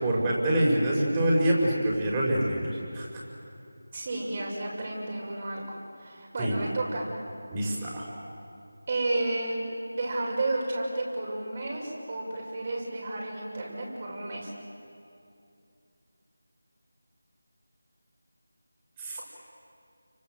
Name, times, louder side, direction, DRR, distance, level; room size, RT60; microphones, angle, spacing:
voice 1, 0.0-3.1 6.4-6.6 7.5-8.0 19.0-19.2, right 1 dB, 20° right, -4 dB, 5.4 m, -25 dB
voice 2, 3.9-7.0 8.9-9.6 9.9-14.5, right 2 dB, 40° right, -3 dB, 7.2 m, -32 dB
29.5 x 25.0 x 7.9 m, 2.6 s
figure-of-eight pair, 165°, 0 cm